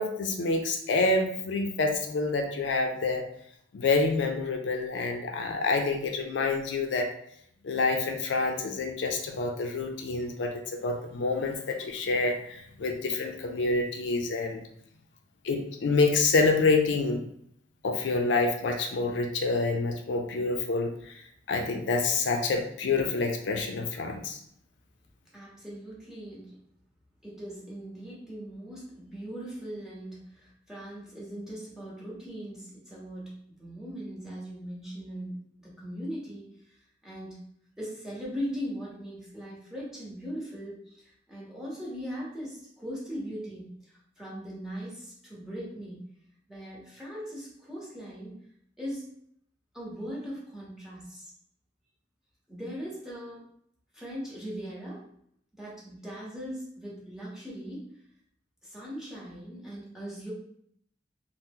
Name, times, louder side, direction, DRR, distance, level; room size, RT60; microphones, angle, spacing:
voice 1, 0.0-3.2 3.7-7.1 7.6-14.6 15.4-17.2 17.8-21.1 21.5-24.4, left 3 dB, 75° left, 4 dB, 0.4 m, -27 dB
voice 2, 25.3-26.6 27.2-36.5 37.0-37.4 37.8-46.1 46.5-48.4 48.8-49.1 49.7-51.3 52.5-53.4 53.9-55.1 55.5-58.0 58.6-60.3, equal, 5° right, -7 dB, 1.0 m, -39 dB
2.8 x 2.0 x 3.5 m, 0.69 s
head